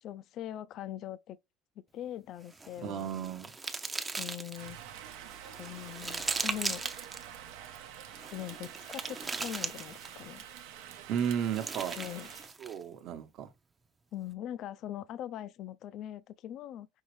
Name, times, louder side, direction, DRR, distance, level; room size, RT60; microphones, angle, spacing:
voice 1, 0.0-1.4 1.9-3.1 4.2-5.0 5.6-6.8 8.3-10.4 12.0-12.3 14.1-16.9, left 12 dB, 50° left, 0.4 m, -41 dB
sound 1, 2.5-4.7 5.3-7.2 8.1-10.3 11.2-12.8, right 3 dB, 15° right, 0.5 m, -38 dB
voice 2, 2.8-3.5 11.1-12.0 12.6-13.5, right 8 dB, 50° right, 1.0 m, -33 dB
Rain, 4.5-12.5, right 10 dB, 85° right, 0.9 m, -47 dB
5.5 x 2.9 x 3.1 m
cardioid pair, 150°, 0 cm